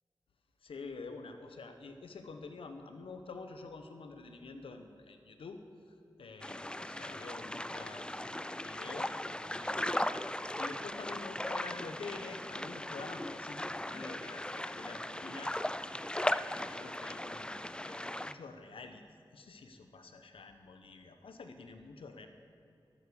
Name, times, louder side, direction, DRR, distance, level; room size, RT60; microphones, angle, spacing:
voice 1, 0.6-5.6 5.9-9.2 9.5-10.0 10.6-15.5 16.1-19.0 19.3-22.3, left 4 dB, 90° left, 7 dB, 1.1 m, -48 dB
sound 1, 6.4-18.3, left 1 dB, 10° left, 0.5 m, -38 dB
13.0 x 9.7 x 7.0 m, 2.7 s
cardioid pair, 45°, 9 cm